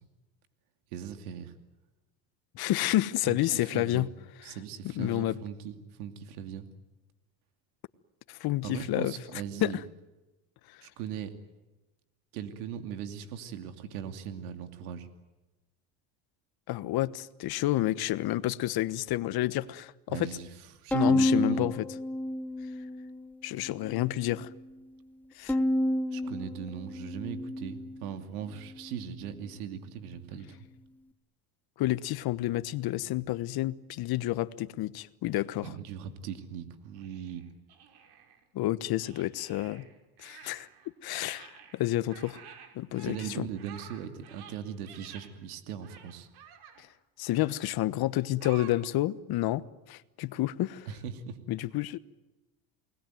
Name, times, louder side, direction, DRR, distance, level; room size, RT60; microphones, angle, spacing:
voice 1, 0.9-1.5 3.3-4.1 4.4-6.7 8.6-9.8 10.8-11.3 12.3-15.1 20.1-21.7 26.1-30.7 35.6-37.4 43.0-46.3 50.2-50.4 50.9-51.4, right 8 dB, 90° right, 2.7 m, -39 dB
voice 2, 2.5-4.1 4.9-5.4 8.3-9.1 9.6-9.8 16.7-20.2 20.9-21.8 23.4-24.5 25.4-25.6 31.8-35.7 38.5-39.8 40.2-40.7 41.0-42.4 42.7-43.5 46.8-46.9 47.2-49.6 49.9-50.9 51.5-52.0, left 15 dB, 55° left, 1.3 m, -29 dB
Bowed string instrument, 20.9-23.3 23.7-24.5 25.5-28.0, left 1 dB, 5° left, 1.7 m, -30 dB
sound 1, 36.9-38.4 39.0-40.9 41.1-45.3 45.8-46.8 47.2-47.7 48.4-48.7, right 8 dB, 60° right, 5.7 m, -51 dB
29.5 x 20.5 x 9.3 m
supercardioid pair, 100°, 43 cm